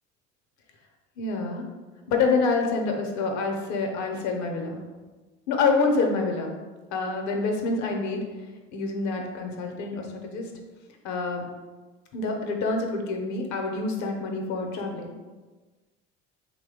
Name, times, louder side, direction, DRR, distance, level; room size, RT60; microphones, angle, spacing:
voice 1, 1.2-1.6 2.1-4.8 5.5-6.5 6.9-8.2 8.7-10.5 11.0-11.4 12.1-15.1, left 3 dB, 70° left, 2 dB, 0.7 m, -27 dB
3.0 x 2.2 x 3.4 m, 1.3 s
supercardioid pair, 90°, 30 cm